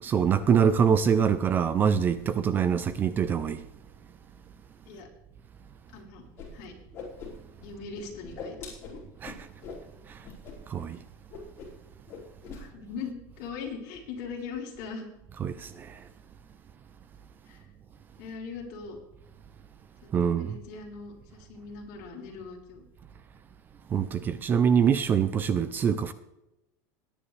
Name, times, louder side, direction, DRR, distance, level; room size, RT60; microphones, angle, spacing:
voice 1, 0.0-3.6 9.2-9.4 10.7-11.0 15.4-16.0 20.1-20.6 23.9-26.1, right 7 dB, 20° right, 0.5 m, -24 dB
voice 2, 5.9-6.3 6.5-6.7 7.6-9.0 12.5-15.1 17.5-17.7 18.2-19.0 20.0-22.9, left 5 dB, 55° left, 3.8 m, -40 dB
Whoosh swoosh swish, 6.4-6.5 6.8-7.7 7.9-9.8 10.2-10.5 10.8-11.0 11.3-11.8 12.1-12.6, left 5 dB, 30° left, 4.9 m, -42 dB
20.5 x 10.0 x 3.3 m
cardioid pair, 170°, 9 cm